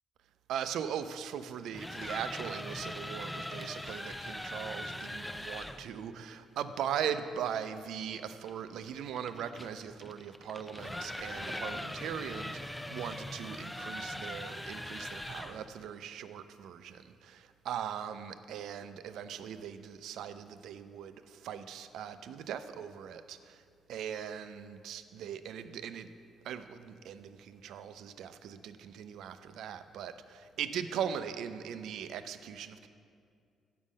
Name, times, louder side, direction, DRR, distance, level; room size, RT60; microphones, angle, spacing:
voice 1, 0.5-23.6 23.9-26.1 26.4-32.9, right 8 dB, 80° right, 11 dB, 0.3 m, -40 dB
sound 1, 1.5-5.9 8.5-15.7, left 1 dB, 5° left, 0.3 m, -41 dB
5.5 x 5.1 x 6.3 m, 2.2 s
cardioid pair, 90°, 0 cm